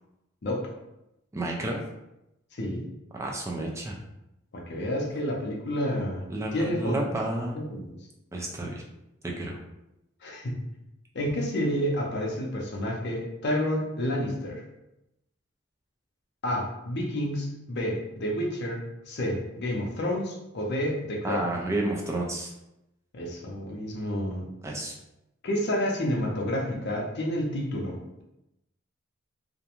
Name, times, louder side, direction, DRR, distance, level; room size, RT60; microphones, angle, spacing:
voice 1, 1.3-1.8 3.1-4.0 6.3-7.6 8.3-8.8 9.2-9.6 21.2-22.5 24.6-24.9, right 1 dB, 15° right, -1 dB, 0.3 m, -31 dB
voice 2, 4.5-6.2 6.5-7.1 7.6-8.0 10.2-10.6 11.1-14.6 16.4-21.5 23.1-24.4 25.4-28.2, equal, 55° left, -1 dB, 0.6 m, -30 dB
2.4 x 2.1 x 2.9 m, 0.90 s
head